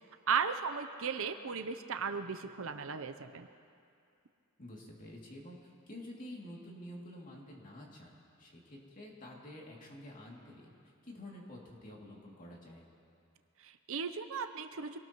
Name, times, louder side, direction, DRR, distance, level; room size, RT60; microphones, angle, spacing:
voice 1, 0.3-3.5 13.6-15.0, right 6 dB, 65° right, 8 dB, 0.7 m, -36 dB
voice 2, 4.6-10.7 11.0-12.9, left 1 dB, 40° left, -2 dB, 2.6 m, -49 dB
25.5 x 18.5 x 3.1 m, 2.5 s
head